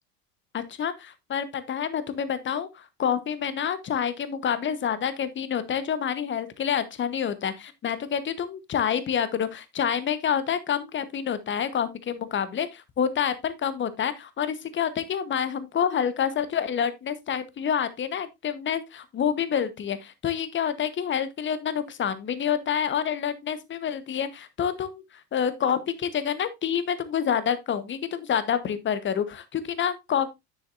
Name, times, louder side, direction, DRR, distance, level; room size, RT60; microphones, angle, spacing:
voice 1, 0.5-25.0 25.3-30.3, left 8 dB, 25° left, 1.2 m, -28 dB
9.6 x 7.3 x 2.6 m
figure-of-eight pair, 75°, 47 cm